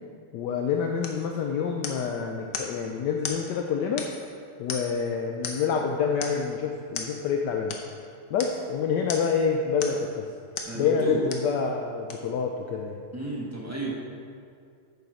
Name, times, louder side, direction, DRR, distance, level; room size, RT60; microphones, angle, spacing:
voice 1, 0.3-4.1 4.6-7.7 8.3-10.3 10.7-13.0, left 6 dB, 75° left, 2 dB, 0.9 m, -27 dB
sound 1, 1.0-1.2 1.8-2.1 2.5-2.8 3.2-3.4 4.0-4.3 4.7-5.0 5.4-5.8 6.2-6.4 6.9-7.1 7.7-7.9 8.4-8.6 9.1-9.4 9.8-10.1 10.6-10.8 11.3-11.5 12.1-12.2, left 5 dB, 60° left, 1.3 m, -36 dB
voice 2, 10.7-11.2 13.1-13.9, right 2 dB, 15° right, -4 dB, 0.5 m, -32 dB
9.2 x 7.0 x 4.8 m, 2.3 s
omnidirectional pair, 2.4 m